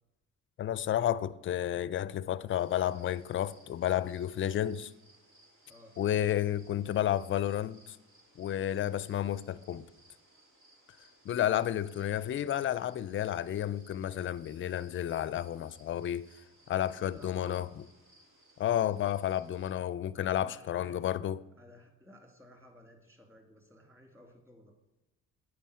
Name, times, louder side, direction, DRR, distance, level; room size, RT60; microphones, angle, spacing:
voice 1, 0.6-4.9 6.0-8.0 8.4-9.9 11.3-16.3 16.7-17.7 18.6-21.4, left 11 dB, 40° left, 0.4 m, -31 dB
sound 1, 2.5-19.7, right 1 dB, 80° right, 2.6 m, -63 dB
voice 2, 5.7-6.0 17.0-17.7 20.1-21.0 21.6-24.7, equal, 10° right, 2.2 m, -55 dB
9.1 x 5.0 x 6.3 m
cardioid pair, 90°, 30 cm